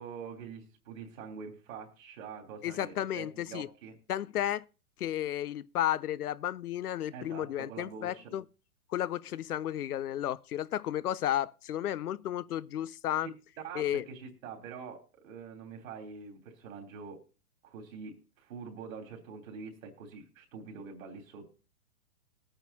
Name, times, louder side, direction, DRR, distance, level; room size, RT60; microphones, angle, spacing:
voice 1, 0.0-3.9 7.1-8.4 13.2-13.3 13.6-17.2 17.6-21.5, right 5 dB, 60° right, 3.4 m, -45 dB
voice 2, 2.6-3.7 4.1-4.6 5.0-8.4 8.9-13.3 13.7-14.0, left 12 dB, 80° left, 0.7 m, -33 dB
21.0 x 9.0 x 2.8 m
hypercardioid pair, 115°, 44 cm